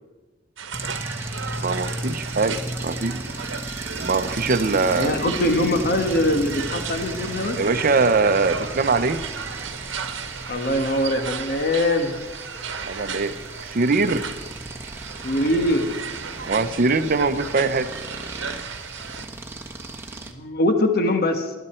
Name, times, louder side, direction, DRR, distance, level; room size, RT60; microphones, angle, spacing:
sound 1, 0.6-19.3, right 6 dB, 70° right, 1.1 m, -35 dB
sound 2, 0.7-20.3, right 1 dB, 15° right, 1.2 m, -35 dB
voice 1, 1.6-3.2 4.0-5.1 7.6-9.2 12.8-13.4 13.6-14.3 16.5-17.9, right 3 dB, 50° right, 11 dB, 0.8 m, -22 dB
voice 2, 4.9-7.6 10.5-12.2 15.2-15.9 19.2-19.3 20.3-21.5, left 1 dB, 55° left, 6 dB, 1.4 m, -22 dB
20.5 x 12.5 x 4.4 m, 1.2 s
head